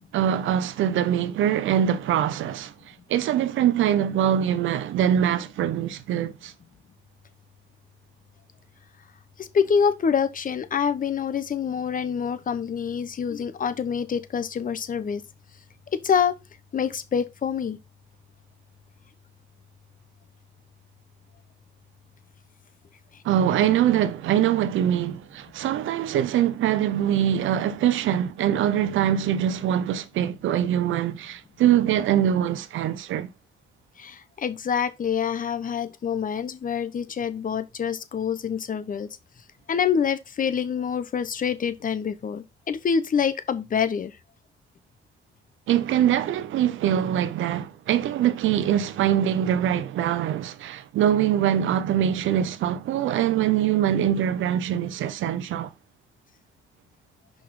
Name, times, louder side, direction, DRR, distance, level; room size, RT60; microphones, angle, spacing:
voice 1, 0.1-2.7 3.1-6.5 23.2-33.3 45.7-55.7, right 10 dB, 80° right, 0.9 m, -23 dB
voice 2, 9.4-15.2 15.9-16.3 16.7-17.8 34.0-39.1 39.7-44.2, left 7 dB, 45° left, 1.0 m, -26 dB
6.5 x 5.4 x 3.8 m
cardioid pair, 90°, 20 cm